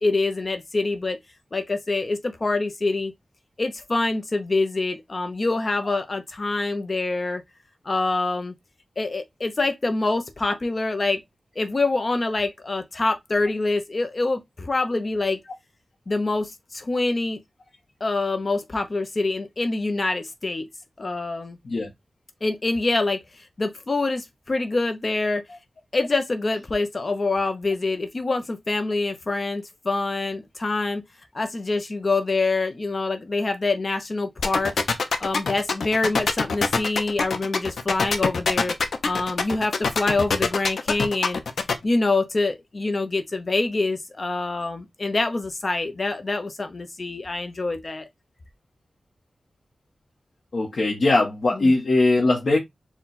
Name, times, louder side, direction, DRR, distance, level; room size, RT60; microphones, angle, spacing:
voice 1, 0.0-1.2 1.5-3.1 3.6-7.4 7.8-8.5 9.0-11.2 11.6-15.4 16.1-17.4 18.0-20.7 21.0-21.6 22.4-25.4 25.9-31.0 31.3-34.7 35.2-38.7 39.0-41.4 41.8-48.1 51.5-51.7, left 3 dB, 40° left, 0.7 m, -25 dB
sound 1, 34.4-41.7, left 4 dB, 85° left, 0.7 m, -23 dB
voice 2, 50.5-52.6, left 2 dB, 65° left, 1.0 m, -20 dB
4.5 x 2.3 x 3.9 m
wide cardioid pair, 95°, 0 cm